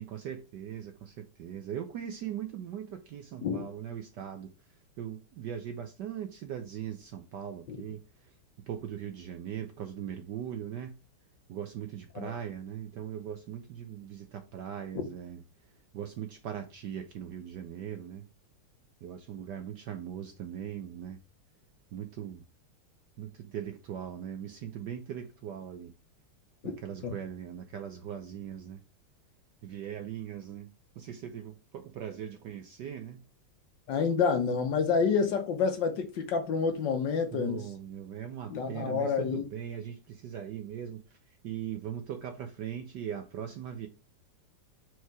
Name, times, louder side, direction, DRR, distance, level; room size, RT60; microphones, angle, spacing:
voice 1, 0.0-4.5 5.0-8.3 8.7-11.0 11.5-15.4 15.9-18.3 19.0-21.2 21.9-22.4 23.2-25.9 26.6-28.8 29.6-30.7 31.0-33.2 37.3-41.0 41.4-43.9, right 9 dB, 70° right, 1.0 m, -40 dB
voice 2, 33.9-37.7 38.5-39.4, left 5 dB, 65° left, 1.3 m, -28 dB
4.7 x 4.5 x 4.6 m
omnidirectional pair, 2.4 m